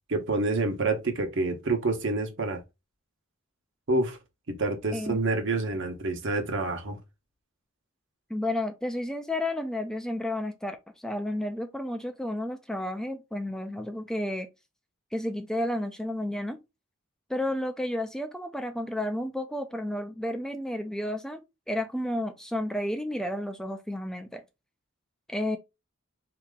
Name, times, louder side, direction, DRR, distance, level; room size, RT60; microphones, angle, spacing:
voice 1, 0.1-2.6 3.9-4.2 4.5-7.0, right 2 dB, 60° right, 1.1 m, -28 dB
voice 2, 8.3-14.5 15.1-16.6 17.3-21.4 21.7-24.4 25.3-25.6, left 1 dB, 5° left, 0.4 m, -31 dB
4.2 x 2.9 x 3.6 m
head